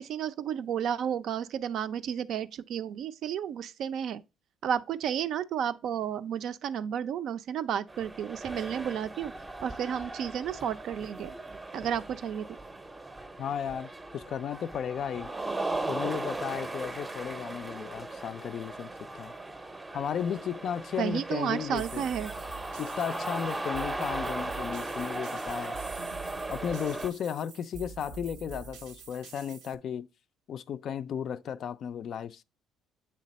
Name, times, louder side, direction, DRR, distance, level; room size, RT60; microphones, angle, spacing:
voice 1, 0.0-4.2 4.6-9.3 9.6-11.3 11.7-12.5 21.0-22.3, right 8 dB, 65° right, 0.4 m, -32 dB
sound 1, 7.9-27.1, right 2 dB, 15° right, 0.5 m, -37 dB
voice 2, 13.4-15.3 15.9-19.3 19.9-22.1 22.8-25.8 26.5-30.1 30.5-32.4, left 8 dB, 60° left, 0.3 m, -35 dB
sound 2, 21.7-29.7, right 6 dB, 85° right, 0.7 m, -46 dB
7.6 x 3.3 x 4.0 m
supercardioid pair, 75°, 0 cm